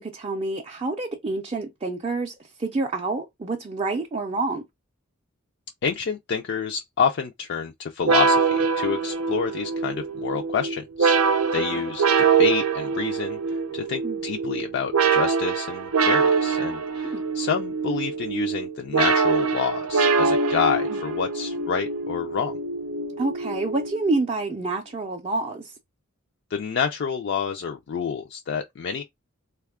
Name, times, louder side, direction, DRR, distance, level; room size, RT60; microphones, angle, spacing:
voice 1, 0.0-4.6 11.7-11.8 14.0-14.2 17.0-17.2 23.2-25.7, right 3 dB, 25° right, 0.4 m, -28 dB
voice 2, 5.8-11.2 11.5-22.5 26.5-29.0, left 6 dB, 55° left, 0.3 m, -28 dB
sound 1, 8.0-24.3, right 5 dB, 90° right, 0.6 m, -24 dB
3.2 x 2.3 x 3.5 m
head